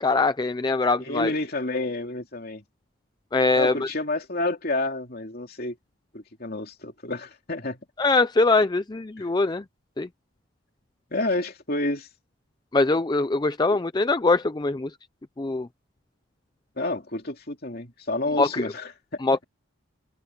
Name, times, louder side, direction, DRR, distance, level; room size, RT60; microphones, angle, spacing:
voice 1, 0.0-1.3 3.3-3.9 8.0-9.6 10.0-10.1 12.7-14.9 15.4-15.7 18.4-18.7 19.2-19.4, left 3 dB, 20° left, 0.4 m, -22 dB
voice 2, 1.0-2.6 3.5-5.7 6.1-7.8 9.2-9.3 11.1-12.1 13.7-13.8 16.8-19.2, left 2 dB, 45° left, 2.9 m, -29 dB
head